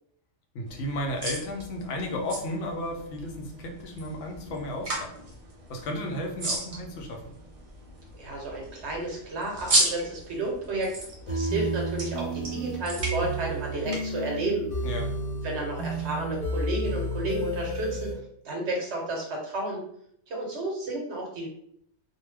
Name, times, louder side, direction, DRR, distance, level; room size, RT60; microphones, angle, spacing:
voice 1, 0.5-5.1 5.7-7.3 14.8-15.1, left 1 dB, 80° left, 1 dB, 1.0 m, -33 dB
sound 1, 0.7-14.0, right 1 dB, 40° right, 0.5 m, -34 dB
voice 2, 8.1-14.7 15.4-18.2 18.4-19.8 20.3-21.5, right 2 dB, 65° right, -1 dB, 1.1 m, -32 dB
sound 2, 11.3-18.1, right 1 dB, 50° left, 0.8 m, -31 dB
2.6 x 2.2 x 3.3 m, 0.69 s
omnidirectional pair, 1.2 m